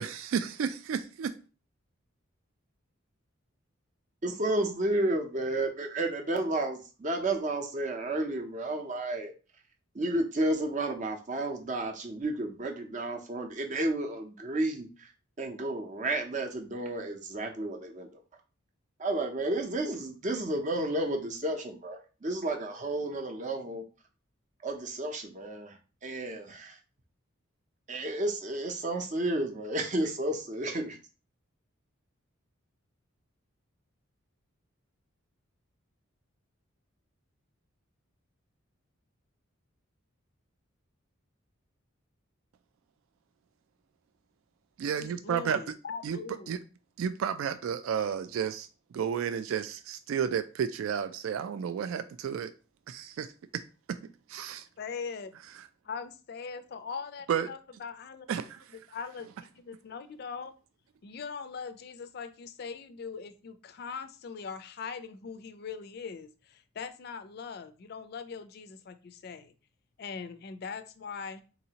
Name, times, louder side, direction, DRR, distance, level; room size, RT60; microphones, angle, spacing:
voice 1, 0.0-1.3 44.8-45.6 46.0-46.2 46.5-46.6 47.0-48.7 48.9-52.5 52.9-53.3 53.5-53.6 54.3-54.7 57.3-57.5 58.3-58.6, right 7 dB, 80° right, 11 dB, 0.3 m, -32 dB
voice 2, 4.2-9.3 9.9-15.1 15.4-18.1 19.0-23.8 24.6-25.8 26.0-26.8 27.9-31.0, right 2 dB, 35° right, 4 dB, 0.6 m, -32 dB
voice 3, 45.0-46.6 54.8-55.3 55.8-58.3 58.7-60.5 61.0-69.5 70.0-71.4, left 5 dB, 50° left, 10 dB, 0.3 m, -41 dB
4.0 x 2.7 x 2.8 m, 0.34 s
head